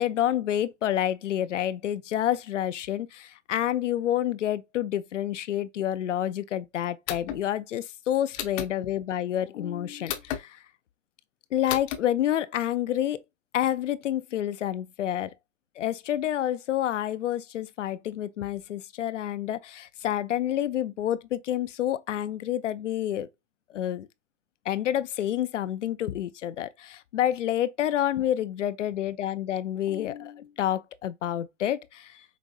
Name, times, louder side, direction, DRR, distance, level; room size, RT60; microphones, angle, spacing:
voice 1, 0.0-10.6 11.5-13.2 13.5-15.3 15.8-23.3 23.7-24.1 24.7-32.2, left 11 dB, 85° left, 0.5 m, -28 dB
sound 1, 7.1-7.4 8.3-8.7 10.1-10.4 11.7-12.0, left 11 dB, 30° left, 0.5 m, -32 dB
5.1 x 2.6 x 2.3 m
hypercardioid pair, 125°, 36 cm